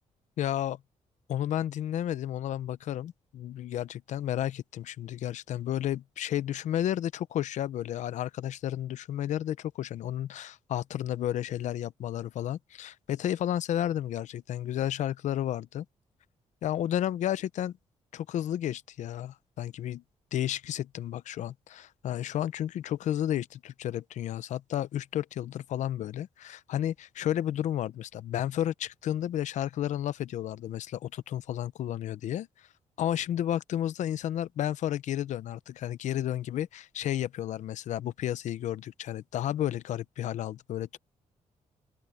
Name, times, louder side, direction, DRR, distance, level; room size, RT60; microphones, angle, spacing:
voice 1, 0.4-0.8 1.3-15.8 16.6-17.7 18.1-20.0 20.3-32.5 33.0-41.0, left 11 dB, 70° left, 0.7 m, -32 dB
open air
cardioid pair, 150°, 13 cm